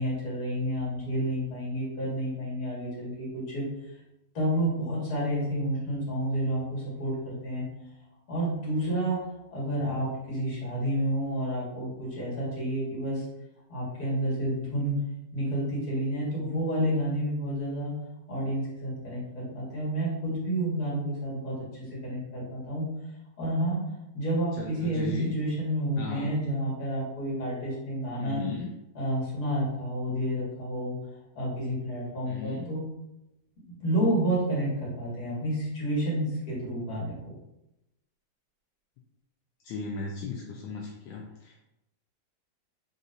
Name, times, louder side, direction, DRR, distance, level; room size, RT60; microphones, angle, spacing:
voice 1, 0.0-3.6 4.3-7.6 8.3-9.2 9.5-13.3 13.7-15.0 15.3-17.9 18.3-21.6 21.9-22.9 23.4-23.8 24.1-28.4 28.9-31.0 31.4-32.8 33.7-37.4, right 1 dB, 55° left, -6 dB, 2.1 m, -30 dB
voice 2, 24.6-25.3 26.0-26.3 28.2-28.7 32.3-32.6 39.6-41.6, left 4 dB, 80° left, -1 dB, 1.3 m, -36 dB
4.1 x 4.0 x 2.5 m, 0.91 s
omnidirectional pair, 2.0 m